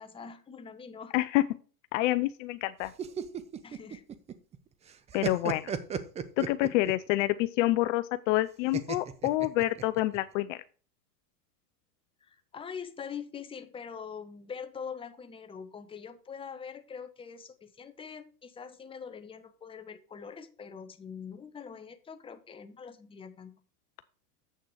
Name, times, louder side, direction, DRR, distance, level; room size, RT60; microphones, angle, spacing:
voice 1, 0.0-1.1 3.6-4.0 12.2-23.6, left 6 dB, 10° left, 9 dB, 0.8 m, -43 dB
voice 2, 1.1-1.5 1.9-2.9 5.1-5.6 6.4-10.6, left 17 dB, 50° left, 14 dB, 0.6 m, -27 dB
sound 1, 2.8-4.6 4.9-7.1 8.7-10.2, right 7 dB, 15° right, 0.4 m, -35 dB
7.7 x 6.6 x 4.8 m, 0.39 s
hypercardioid pair, 110°, 48 cm